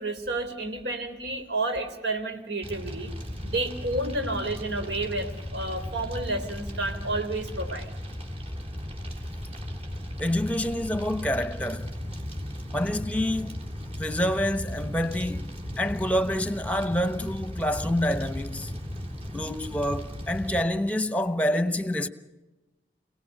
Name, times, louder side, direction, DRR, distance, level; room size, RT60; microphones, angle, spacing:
voice 1, 0.0-3.1 3.4-7.9, right 2 dB, 80° right, 3.7 m, -30 dB
Fire, 2.6-20.6, equal, 35° right, 3.6 m, -36 dB
voice 2, 10.2-11.9 12.7-13.6 14.0-18.7 19.3-22.1, left 1 dB, 10° left, 1.1 m, -27 dB
28.5 x 19.0 x 6.6 m
head